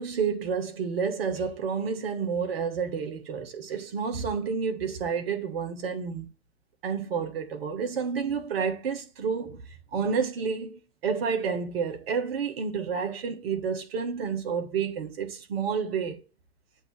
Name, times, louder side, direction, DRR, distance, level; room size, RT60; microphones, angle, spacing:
voice 1, 0.0-6.3 6.8-9.6 9.9-16.2, right 6 dB, 60° right, 1.5 m, -30 dB
8.0 x 2.9 x 6.0 m
figure-of-eight pair, 85°, 33 cm